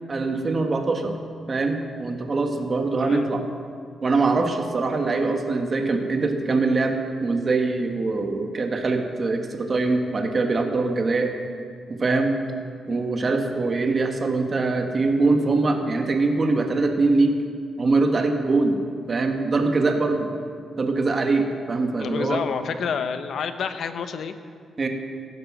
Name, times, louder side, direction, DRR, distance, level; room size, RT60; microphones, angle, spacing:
voice 1, 0.1-1.1 1.5-3.4 4.0-11.3 11.9-12.3 12.9-17.3 17.8-18.8 19.1-20.3 20.8-22.4 24.8-24.9, right 3 dB, 35° right, 4 dB, 1.5 m, -23 dB
voice 2, 3.0-3.3 22.0-24.3, left 6 dB, 65° left, 9 dB, 0.9 m, -28 dB
15.5 x 11.5 x 6.1 m, 2.2 s
cardioid pair, 115°, 0 cm